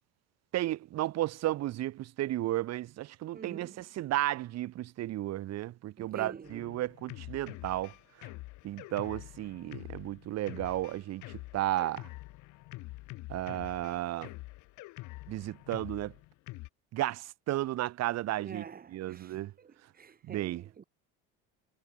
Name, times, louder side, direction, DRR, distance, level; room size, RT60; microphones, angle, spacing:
voice 1, 0.5-7.9 8.2-8.3 8.6-11.2 11.5-12.0 13.3-14.3 15.3-16.1 16.9-18.6 18.9-19.5 20.3-20.6, right 15 dB, 55° right, 1.4 m, -33 dB
voice 2, 3.3-3.8 6.0-6.7 18.4-20.8, right 6 dB, 30° right, 1.8 m, -47 dB
Drum kit, 6.4-16.7, left 20 dB, 70° left, 3.2 m, -46 dB
supercardioid pair, 90°, 32 cm